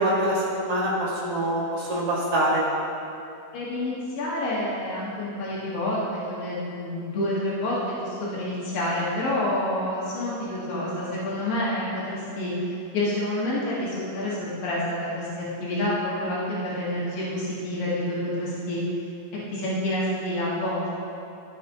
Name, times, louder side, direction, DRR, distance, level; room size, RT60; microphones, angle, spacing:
voice 1, 0.0-2.6, right 1 dB, 20° right, -8 dB, 1.2 m, -24 dB
voice 2, 3.5-15.3 15.6-18.8 19.5-21.0, left 1 dB, 85° left, -7 dB, 3.1 m, -28 dB
14.0 x 6.6 x 2.9 m, 2.7 s
omnidirectional pair, 3.9 m